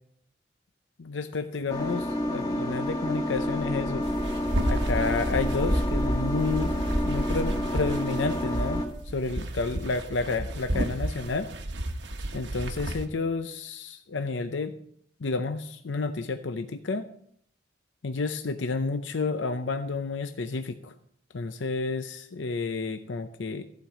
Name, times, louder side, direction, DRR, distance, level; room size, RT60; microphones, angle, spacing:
voice 1, 1.0-4.1 4.7-8.8 9.1-11.5 12.3-14.7 15.2-17.1 18.0-20.9 21.3-23.7, left 3 dB, 80° left, 8 dB, 0.6 m, -30 dB
sound 1, 1.7-8.9, equal, 20° left, 2.0 m, -28 dB
sound 2, 4.0-13.1, right 1 dB, 70° right, 1.1 m, -34 dB
14.5 x 5.2 x 7.4 m, 0.68 s
head